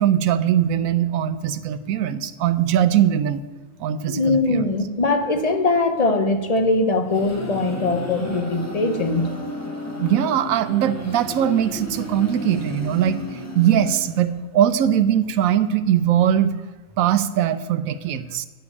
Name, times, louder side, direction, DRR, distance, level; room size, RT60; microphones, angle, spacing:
voice 1, 0.0-3.4 3.8-4.7 10.0-13.2 13.5-16.5 17.0-18.5, right 10 dB, 75° right, 12 dB, 1.0 m, -20 dB
voice 2, 4.1-9.3, left 2 dB, 35° left, 7 dB, 0.6 m, -21 dB
sound 1, 6.8-14.5, left 2 dB, 10° left, 1.2 m, -33 dB
10.0 x 5.1 x 8.2 m, 1.3 s
omnidirectional pair, 1.5 m